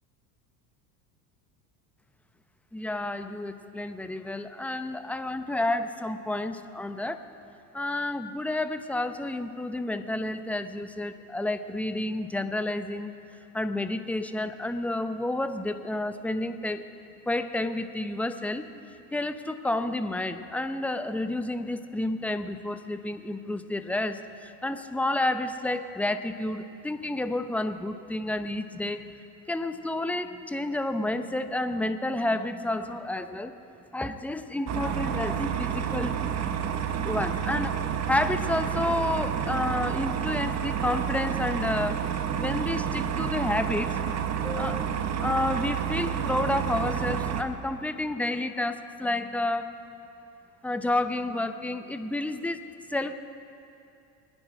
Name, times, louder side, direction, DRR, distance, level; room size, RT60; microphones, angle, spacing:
voice 1, 2.7-7.3 7.7-13.1 13.5-16.9 17.3-18.6 19.1-29.1 29.5-33.5 33.9-36.1 37.0-37.8 38.1-42.0 42.4-44.0 44.4-44.8 45.2-49.7 50.6-52.6 52.9-53.1, left 2 dB, 5° left, 9 dB, 0.7 m, -30 dB
sound 1, 34.7-47.4, right 8 dB, 35° right, 1.0 m, -29 dB
23.0 x 9.9 x 5.0 m, 2.6 s
hypercardioid pair, 90°, 48 cm